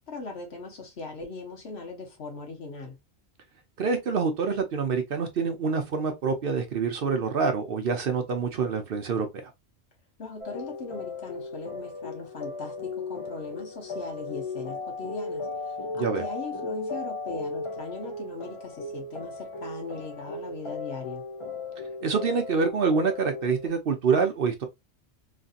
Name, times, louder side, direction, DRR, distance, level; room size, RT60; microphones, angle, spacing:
voice 1, 0.1-3.0 10.2-15.5 16.0-21.2, left 3 dB, 65° left, 1.3 m, -39 dB
voice 2, 3.8-9.5 15.9-16.3 22.0-24.7, right 5 dB, 60° right, 0.8 m, -26 dB
sound 1, 10.4-23.7, left 3 dB, 40° left, 0.5 m, -36 dB
3.2 x 2.6 x 2.5 m
omnidirectional pair, 1.2 m